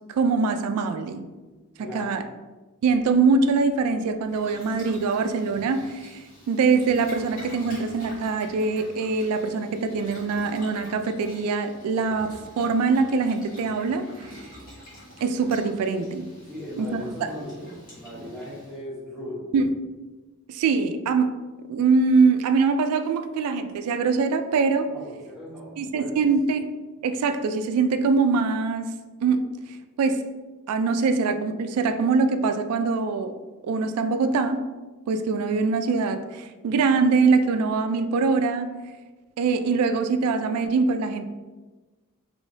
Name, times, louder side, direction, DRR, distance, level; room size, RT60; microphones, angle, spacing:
voice 1, 0.1-1.3 1.9-2.2 2.8-6.2 6.5-14.3 15.2-16.3 16.8-16.9 19.5-19.6 20.5-24.9 25.8-26.7 27.0-28.9 29.2-29.5 30.0-30.3 30.7-33.4 33.6-34.6 35.1-38.9 39.4-41.3, right 4 dB, 90° right, 13 dB, 0.3 m, -23 dB
voice 2, 1.8-2.3 16.4-19.4 24.9-26.3, equal, ahead, -13 dB, 1.0 m, -38 dB
Boiling, 4.2-18.8, equal, 40° left, 1.3 m, -46 dB
3.2 x 3.0 x 2.7 m, 1.2 s
head